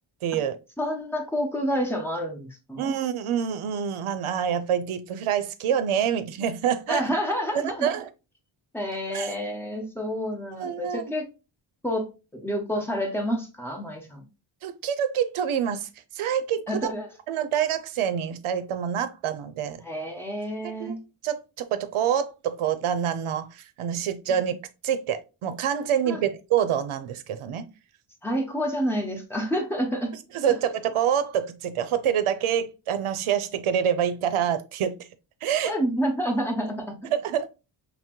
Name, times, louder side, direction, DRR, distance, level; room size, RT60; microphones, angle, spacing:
voice 1, 0.2-0.6 2.8-7.0 7.6-8.1 9.1-9.3 10.5-11.0 14.6-15.9 16.1-16.9 17.3-19.8 20.6-21.0 21.2-24.5 24.8-27.7 30.3-35.1 35.4-35.7 37.1-37.5, right 9 dB, 80° right, 0.7 m, -26 dB
voice 2, 0.8-3.0 6.9-7.9 8.7-11.3 11.8-14.2 16.7-17.1 19.8-21.0 26.1-26.2 28.2-30.1 35.6-37.0, equal, 5° left, 1.0 m, -29 dB
5.6 x 2.1 x 3.0 m
wide cardioid pair, 125°, 49 cm